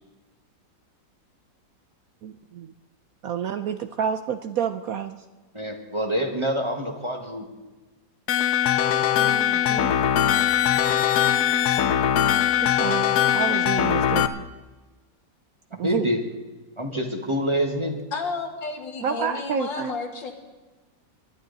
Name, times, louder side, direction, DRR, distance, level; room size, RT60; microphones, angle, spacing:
voice 1, 2.2-2.7 3.2-5.2 9.2-10.0 12.6-14.4 15.8-16.1 19.0-20.0, right 8 dB, 65° right, 9 dB, 0.9 m, -29 dB
voice 2, 5.5-7.4 15.7-16.2 16.8-17.9, equal, 15° right, 3 dB, 1.4 m, -26 dB
sound 1, 8.3-14.3, left 10 dB, 65° left, 1.1 m, -21 dB
voice 3, 18.1-20.3, left 4 dB, 85° left, 3 dB, 2.5 m, -31 dB
21.0 x 12.0 x 4.0 m, 1.2 s
omnidirectional pair, 1.9 m